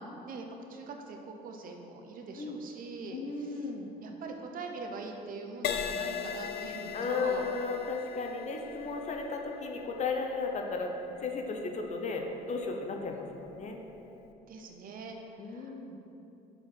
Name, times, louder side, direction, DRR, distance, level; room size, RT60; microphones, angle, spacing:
voice 1, 0.0-3.7 4.0-7.5 14.5-15.7, right 3 dB, 55° right, 3 dB, 0.9 m, -43 dB
voice 2, 3.1-3.9 6.9-10.9 11.2-13.8 15.4-16.0, left 4 dB, 45° left, 3 dB, 0.9 m, -35 dB
Crash cymbal, 5.6-13.3 14.0-14.3, left 7 dB, 75° left, 0.5 m, -40 dB
6.7 x 4.6 x 6.1 m, 2.9 s
cardioid pair, 110°, 17 cm